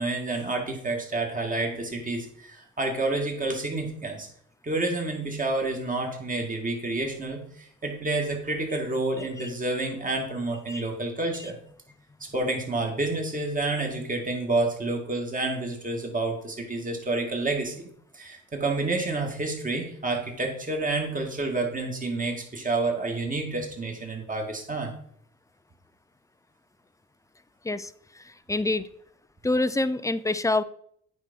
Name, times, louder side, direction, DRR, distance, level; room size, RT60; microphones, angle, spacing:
voice 1, 0.0-4.3 4.6-11.6 12.3-24.9, right 2 dB, 25° right, 2 dB, 2.1 m, -29 dB
voice 2, 27.6-28.9 29.4-30.6, left 2 dB, 10° left, 14 dB, 0.4 m, -27 dB
9.2 x 4.2 x 5.4 m, 0.66 s
cardioid pair, 90°, 30 cm